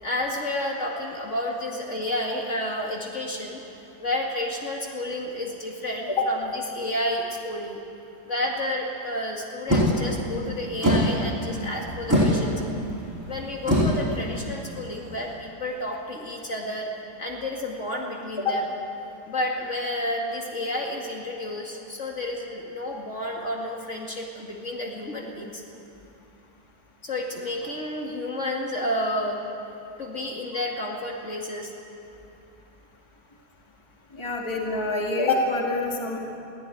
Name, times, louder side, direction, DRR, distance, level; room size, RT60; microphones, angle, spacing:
voice 1, 0.0-3.6 4.0-7.8 8.3-12.6 13.3-16.9 17.2-18.7 19.3-25.6 27.0-29.4 30.0-31.7, left 1 dB, 45° left, -1 dB, 2.5 m, -31 dB
sound 1, 9.7-15.3, equal, 10° right, 7.6 m, -25 dB
voice 2, 34.1-36.2, left 2 dB, 15° left, 0 dB, 2.2 m, -26 dB
22.5 x 15.5 x 9.3 m, 2.8 s
omnidirectional pair, 1.8 m